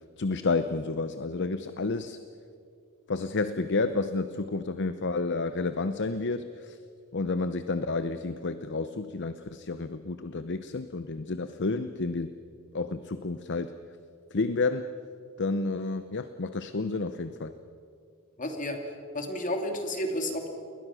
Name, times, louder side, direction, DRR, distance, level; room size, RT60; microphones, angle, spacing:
voice 1, 0.2-2.2 3.1-6.8 7.1-12.3 12.7-13.7 14.3-14.9 15.4-17.5, left 3 dB, 55° left, 11 dB, 0.8 m, -30 dB
voice 2, 18.4-18.8 19.1-20.5, left 1 dB, 35° left, 4 dB, 2.8 m, -31 dB
29.0 x 21.5 x 6.3 m, 2.4 s
head